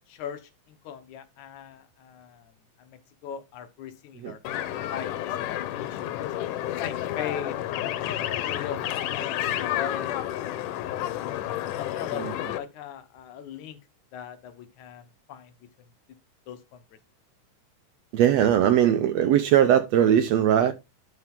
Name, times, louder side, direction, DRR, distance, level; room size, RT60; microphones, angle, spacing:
voice 1, 0.1-2.5 2.8-4.4 4.9-6.3 6.8-7.6 8.0-8.8 9.1-10.3 11.0-11.1 11.8-13.8 14.1-15.5 16.1-16.2 16.5-16.8, left 8 dB, 70° left, 2.3 m, -40 dB
sound 1, 4.4-12.6, left 12 dB, 90° left, 2.4 m, -30 dB
voice 2, 18.1-20.7, right 10 dB, 75° right, 1.6 m, -20 dB
11.5 x 4.6 x 3.6 m
omnidirectional pair, 3.6 m